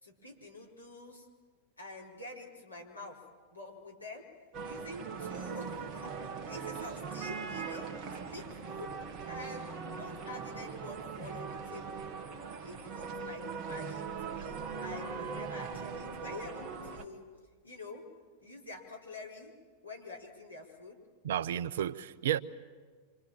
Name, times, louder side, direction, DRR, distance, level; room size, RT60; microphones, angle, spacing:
voice 1, 0.0-1.3 1.8-3.2 3.5-4.3 4.6-6.1 6.5-9.0 9.3-12.1 12.6-17.3 17.6-18.1 18.4-19.6 19.8-21.0, left 2 dB, 80° left, 4.7 m, -47 dB
sound 1, 4.5-17.0, right 5 dB, 35° right, 2.1 m, -40 dB
voice 2, 21.2-22.4, right 10 dB, 60° right, 0.8 m, -32 dB
27.0 x 26.5 x 7.5 m
figure-of-eight pair, 90°, 0 cm